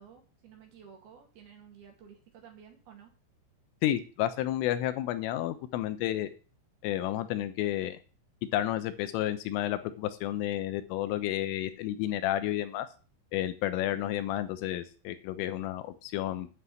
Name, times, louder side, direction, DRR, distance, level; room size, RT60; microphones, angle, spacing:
voice 1, 0.0-3.1, right 7 dB, 60° right, 2 dB, 3.6 m, -53 dB
voice 2, 3.8-6.3 6.8-8.0 8.5-12.9 13.3-16.5, left 13 dB, 85° left, 11 dB, 3.4 m, -31 dB
9.3 x 6.0 x 8.3 m, 0.36 s
omnidirectional pair, 5.7 m